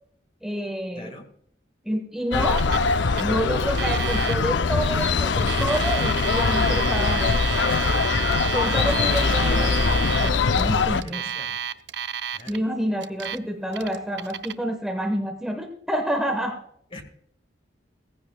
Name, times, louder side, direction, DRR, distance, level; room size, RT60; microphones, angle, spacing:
voice 1, 0.4-1.1 1.8-2.6 3.2-7.4 8.5-9.8 10.2-11.3 12.5-16.6, equal, ahead, 3 dB, 1.1 m, -28 dB
voice 2, 1.0-1.3 10.8-11.6 12.3-12.6 16.9-17.0, left 1 dB, 30° left, 6 dB, 1.8 m, -44 dB
sound 1, 2.3-11.0, left 4 dB, 75° left, 0.6 m, -22 dB
Alarm, 2.6-2.9 3.1-3.2 3.7-4.3 5.3-10.3 11.0-12.6 13.0-13.4 13.7-14.5, right 8 dB, 65° right, 0.6 m, -31 dB
17.5 x 15.0 x 2.3 m, 0.68 s
head